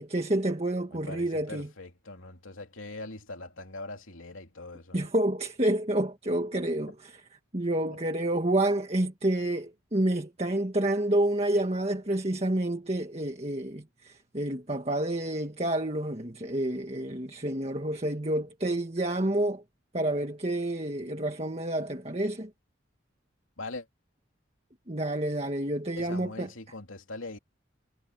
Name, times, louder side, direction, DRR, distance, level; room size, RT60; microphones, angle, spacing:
voice 1, 0.0-1.7 4.9-7.2 7.5-19.6 19.9-22.5 24.9-26.5, right 1 dB, 30° right, 1.8 m, -29 dB
voice 2, 0.9-5.1 23.6-23.9 26.0-27.4, left 2 dB, 90° left, 3.1 m, -42 dB
head